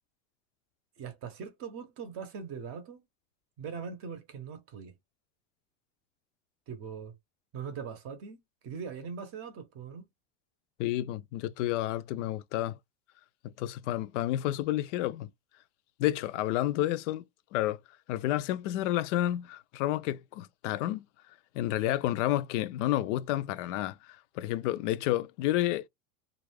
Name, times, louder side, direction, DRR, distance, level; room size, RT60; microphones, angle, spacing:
voice 1, 1.0-3.0 3.6-5.0 6.7-7.1 7.5-10.1, right 6 dB, 35° right, 0.6 m, -41 dB
voice 2, 10.8-12.8 13.4-15.3 16.0-17.2 17.5-17.8 18.1-21.0 21.5-25.9, left 14 dB, 70° left, 0.5 m, -30 dB
2.4 x 2.2 x 3.1 m
supercardioid pair, 145°, 38 cm